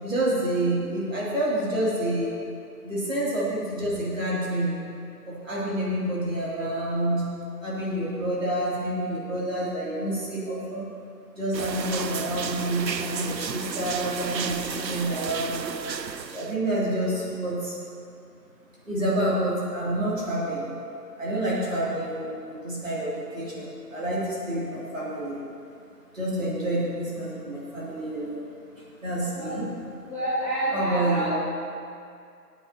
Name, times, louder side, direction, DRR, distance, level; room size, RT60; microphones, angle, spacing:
voice 1, 0.0-2.4 2.8-4.8 5.3-7.2 7.6-10.8 11.4-15.8 16.3-17.8 18.9-20.6 21.2-25.4 26.1-28.4 29.0-29.7 30.7-31.3, right 1 dB, 50° right, -7 dB, 3.1 m, -28 dB
sound 1, 11.5-16.5, right 6 dB, 80° right, 0.8 m, -33 dB
voice 2, 30.0-31.3, right 1 dB, ahead, -22 dB, 2.9 m, -28 dB
18.0 x 9.0 x 3.0 m, 2.4 s
figure-of-eight pair, 175°, 50 cm